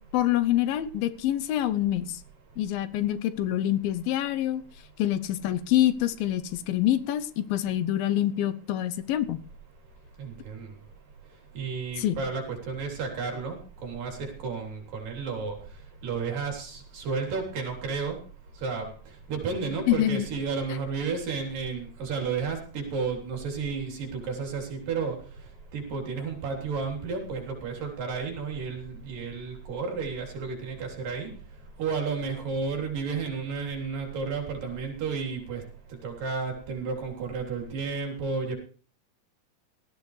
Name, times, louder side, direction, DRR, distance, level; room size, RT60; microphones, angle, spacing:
voice 1, 0.1-2.2 2.6-4.6 5.0-9.4 12.0-12.2 19.9-20.3, left 12 dB, 80° left, 12 dB, 2.6 m, -26 dB
voice 2, 10.2-10.7 11.5-15.6 16.0-18.2 18.6-18.9 19.3-25.2 25.7-31.3 31.8-35.6 36.0-38.6, right 5 dB, 65° right, 1 dB, 5.0 m, -32 dB
18.0 x 14.0 x 3.3 m, 0.42 s
omnidirectional pair, 4.2 m